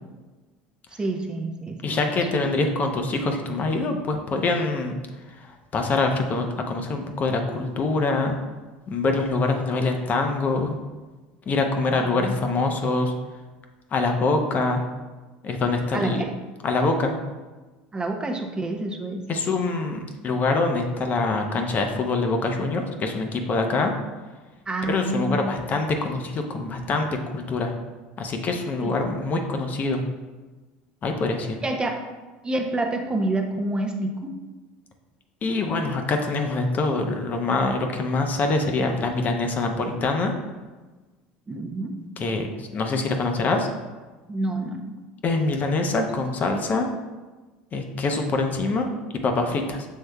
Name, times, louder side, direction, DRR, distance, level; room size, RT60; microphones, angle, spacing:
voice 1, 0.9-2.6 11.9-12.4 15.9-16.3 17.9-19.2 24.7-25.5 28.8-28.9 31.6-32.0 32.4-34.3 41.5-42.0 44.3-44.9 45.9-46.1, right 2 dB, 20° right, 3 dB, 0.5 m, -28 dB
voice 2, 1.8-5.0 5.4-8.4 8.9-10.7 11.5-13.1 13.9-14.8 15.4-16.2 16.6-17.1 19.3-23.9 24.9-27.7 28.2-30.0 31.0-31.6 35.4-40.3 42.2-43.7 45.2-46.9 47.7-48.9 49.2-49.9, left 3 dB, 40° left, 4 dB, 0.6 m, -24 dB
6.4 x 3.3 x 2.2 m, 1.2 s
supercardioid pair, 95°, 4 cm